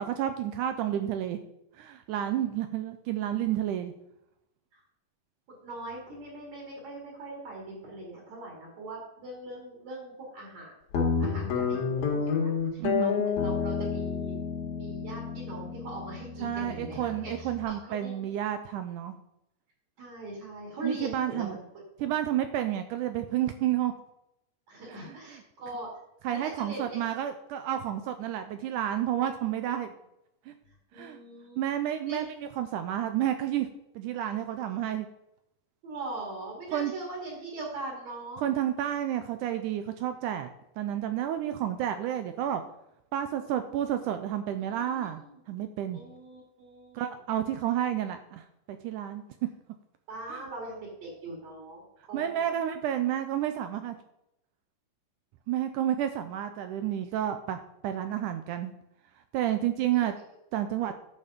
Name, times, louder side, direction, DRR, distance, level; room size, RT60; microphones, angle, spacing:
voice 1, 0.0-1.4 1.8-3.9 12.8-13.3 16.4-19.2 20.8-21.6 22.0-23.9 24.9-25.4 26.2-29.9 30.5-30.6 30.9-31.2 31.6-32.3 32.6-33.7 34.0-35.1 36.7-36.9 38.4-40.5 40.8-42.6 43.1-45.2 45.5-46.0 47.0-49.2 50.2-50.5 52.1-54.0 55.5-57.6 57.8-58.7 59.3-60.1 60.5-60.9, right 11 dB, 80° right, 8 dB, 1.9 m, -30 dB
voice 2, 5.6-14.4 14.8-18.1 20.0-21.6 24.7-25.9 26.3-27.0 30.9-32.3 35.8-38.4 44.8-45.3 45.9-47.1 50.1-52.5 59.9-60.1, right 2 dB, 50° right, -2 dB, 3.9 m, -41 dB
Guitar, 10.9-17.6, left 6 dB, 80° left, 3.6 m, -30 dB
11.0 x 6.7 x 5.1 m, 0.82 s
omnidirectional pair, 4.0 m